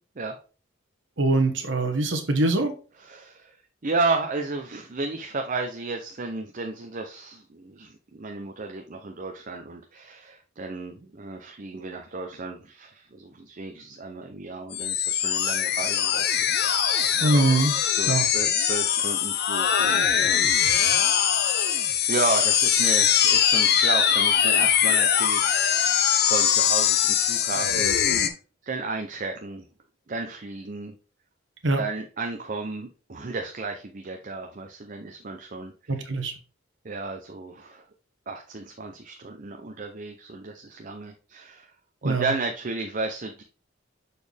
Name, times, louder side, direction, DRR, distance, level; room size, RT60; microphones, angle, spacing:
voice 1, 1.2-2.7 17.2-17.7 18.1-18.3 31.6-31.8 35.9-36.3 42.0-42.3, right 2 dB, 70° right, 5 dB, 1.2 m, -22 dB
voice 2, 3.0-3.6 3.8-17.6 18.0-20.5 20.8-21.3 22.1-28.0 28.6-29.7 30.1-30.9 31.8-36.0 36.8-37.8 38.3-41.7 42.0-43.4, right 3 dB, 45° right, 4 dB, 0.6 m, -33 dB
sound 1, 14.7-28.3, left 9 dB, 55° left, 0.7 m, -22 dB
6.8 x 4.2 x 3.4 m, 0.37 s
head